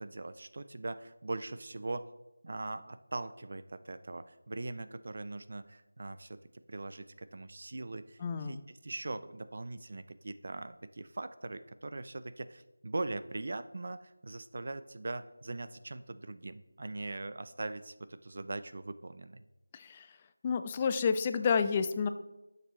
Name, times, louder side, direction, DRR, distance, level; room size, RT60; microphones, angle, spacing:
voice 1, 0.0-2.1 2.4-19.4, right 2 dB, 50° right, 12 dB, 0.5 m, -41 dB
voice 2, 8.2-8.7 19.7-20.1 20.4-22.1, left 6 dB, 20° left, 10 dB, 0.3 m, -30 dB
11.5 x 6.7 x 3.1 m, 0.99 s
figure-of-eight pair, 170°, 0 cm